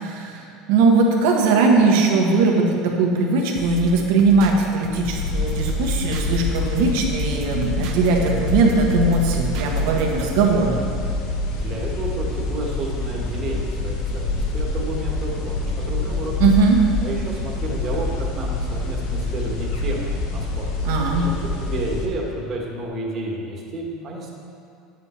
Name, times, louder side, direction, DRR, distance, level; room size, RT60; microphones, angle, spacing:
voice 1, 0.0-10.8 16.4-16.8 20.8-21.3, right 3 dB, 75° right, 0 dB, 1.5 m, -19 dB
sound 1, 3.5-10.4, right 3 dB, 55° right, 0.9 m, -34 dB
sound 2, 5.1-22.0, left 2 dB, 70° left, 1.5 m, -26 dB
voice 2, 11.5-16.4 17.0-20.7 21.6-24.3, right 2 dB, 30° right, -2 dB, 1.6 m, -31 dB
10.0 x 8.2 x 4.4 m, 2.5 s
cardioid pair, 165°, 0 cm